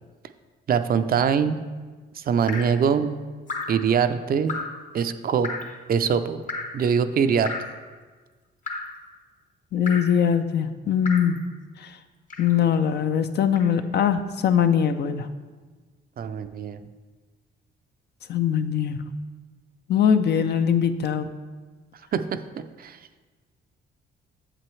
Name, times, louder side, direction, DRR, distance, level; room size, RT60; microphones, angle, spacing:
voice 1, 0.7-1.6 2.2-3.1 3.7-4.5 4.9-5.5 5.9-6.4 6.7-7.5 16.2-16.8 22.1-22.4 22.8-23.0, right 7 dB, 50° right, 10 dB, 0.5 m, -23 dB
Drip, 2.5-2.8 3.5-3.8 4.5-4.8 5.4-5.8 6.5-6.8 7.4-7.8 8.7-9.0 9.9-10.2 11.0-11.4 12.3-12.6 13.5-13.7, left 3 dB, 40° left, 0.9 m, -33 dB
voice 2, 9.7-11.4 12.4-15.3 18.3-19.0 19.9-21.3, left 8 dB, 60° left, 9 dB, 0.5 m, -21 dB
7.6 x 7.5 x 3.1 m, 1.4 s
cardioid pair, 90°, 20 cm